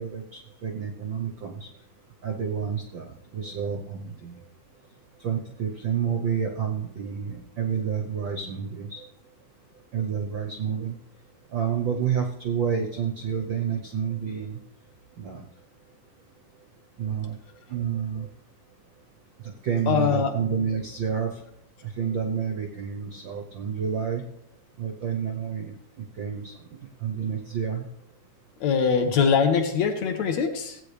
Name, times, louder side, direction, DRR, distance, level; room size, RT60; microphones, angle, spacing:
voice 1, 0.0-1.7 2.2-4.4 5.2-9.0 9.9-11.0 11.5-14.6 15.2-15.4 17.0-17.4 17.7-18.3 19.4-21.4 21.8-24.2 24.8-25.7 26.2-26.5 27.0-27.8, right 7 dB, 85° right, 2 dB, 1.0 m, -29 dB
voice 2, 19.9-20.3 28.6-30.8, left 6 dB, 65° left, 5 dB, 1.9 m, -22 dB
16.5 x 8.7 x 3.4 m, 0.77 s
omnidirectional pair, 3.8 m